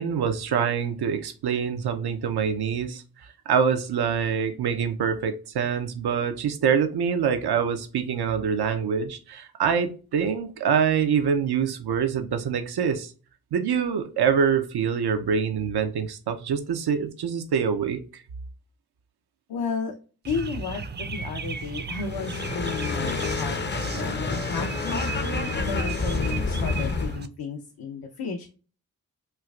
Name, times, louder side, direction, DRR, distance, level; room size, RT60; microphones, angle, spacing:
voice 1, 0.0-3.0 3.5-13.1 13.5-18.2, right 7 dB, 90° right, 8 dB, 0.6 m, -25 dB
voice 2, 19.5-19.9 20.2-28.5, left 5 dB, 75° left, 3 dB, 0.7 m, -33 dB
sound 1, 20.3-27.3, right 5 dB, 30° right, 0.4 m, -35 dB
sound 2, 22.0-27.2, left 4 dB, 30° left, 0.5 m, -29 dB
4.5 x 2.4 x 2.3 m, 0.36 s
cardioid pair, 60°, 37 cm